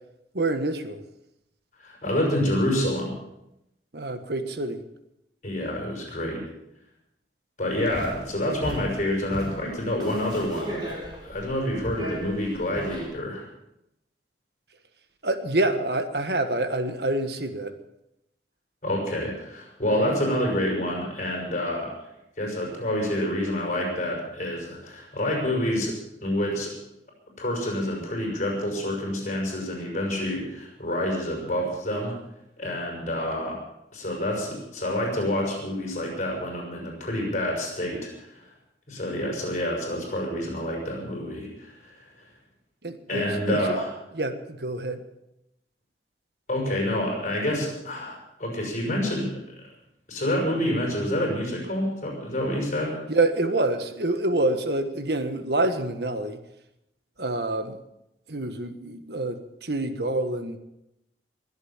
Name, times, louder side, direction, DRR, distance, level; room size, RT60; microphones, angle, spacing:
voice 1, 0.3-1.0 3.9-4.8 15.2-17.7 42.8-43.6 44.1-45.0 53.1-56.4 57.2-57.8 58.3-60.6, right 2 dB, 65° right, 9 dB, 1.5 m, -27 dB
voice 2, 1.8-3.1 5.4-6.4 7.6-10.8 11.2-13.5 18.8-21.9 22.4-25.9 26.2-26.7 27.4-32.1 32.6-33.6 33.9-38.3 38.9-42.0 43.1-43.9 46.5-49.3 50.1-53.0, left 1 dB, 45° left, 0 dB, 6.5 m, -28 dB
sound 1, 7.7-13.1, equal, 20° right, 6.5 m, -36 dB
22.5 x 8.2 x 7.3 m, 0.86 s
head